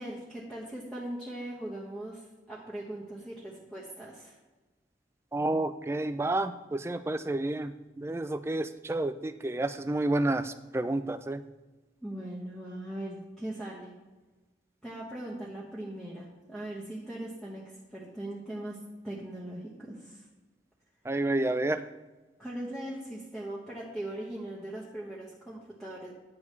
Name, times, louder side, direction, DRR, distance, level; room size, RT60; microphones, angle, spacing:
voice 1, 0.0-4.4 12.0-14.0 14.8-20.3 22.4-26.1, right 1 dB, ahead, -6 dB, 1.0 m, -40 dB
voice 2, 5.3-11.4 21.1-21.8, right 2 dB, 15° right, 11 dB, 0.3 m, -30 dB
9.7 x 7.1 x 3.2 m, 1.2 s
head